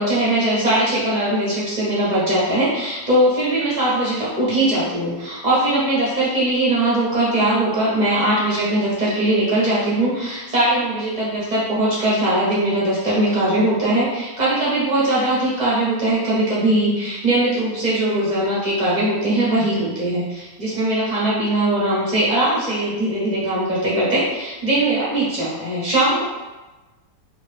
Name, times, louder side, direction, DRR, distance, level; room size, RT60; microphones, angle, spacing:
voice 1, 0.0-26.2, right 1 dB, 45° right, -7 dB, 0.5 m, -20 dB
2.9 x 2.5 x 3.2 m, 1.1 s
omnidirectional pair, 1.9 m